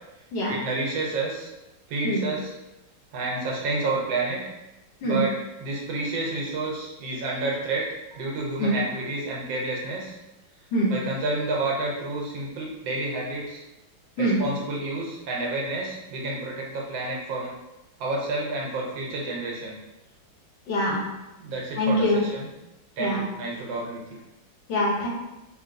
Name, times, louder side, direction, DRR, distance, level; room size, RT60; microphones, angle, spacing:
voice 1, 0.5-1.5 1.9-2.5 3.1-4.5 5.0-7.9 8.2-10.2 10.9-13.6 14.2-17.5 18.0-19.8 21.4-22.5 23.0-24.2, right 2 dB, 80° right, -3 dB, 1.5 m, -30 dB
voice 2, 20.7-21.0 21.8-22.2 23.0-23.2 24.7-25.1, equal, 70° left, -4 dB, 1.4 m, -23 dB
3.7 x 2.5 x 2.6 m, 0.97 s
omnidirectional pair, 2.1 m